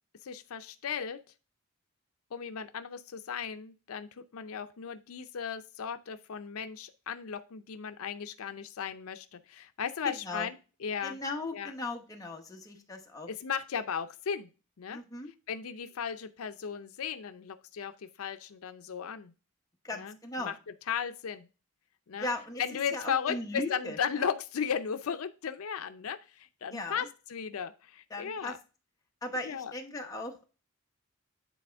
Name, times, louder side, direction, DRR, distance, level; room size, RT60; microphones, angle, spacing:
voice 1, 0.2-1.2 2.3-11.2 11.5-11.7 13.3-14.5 14.8-15.0 15.5-19.3 20.0-20.1 20.4-20.5 20.9-21.5 22.1-22.3 22.6-28.6 29.4-29.7, left 7 dB, 80° left, 10 dB, 0.5 m, -36 dB
voice 2, 10.0-10.5 11.0-13.3 14.9-15.3 19.8-20.5 22.2-24.0 26.7-27.1 28.1-28.6 29.2-30.5, left 2 dB, 15° left, 2 dB, 0.9 m, -38 dB
9.2 x 4.2 x 3.4 m, 0.33 s
head